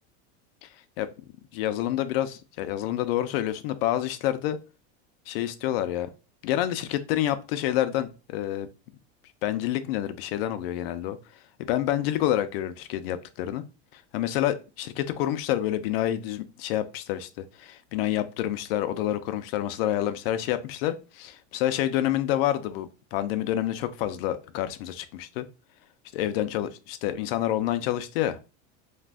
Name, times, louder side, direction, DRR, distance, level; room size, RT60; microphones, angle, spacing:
voice 1, 1.5-4.6 5.3-6.1 6.4-8.7 9.4-11.2 11.7-13.6 13.9-25.5 26.1-28.4, left 12 dB, 60° left, 0.5 m, -28 dB
2.5 x 2.2 x 3.3 m
supercardioid pair, 165°, 33 cm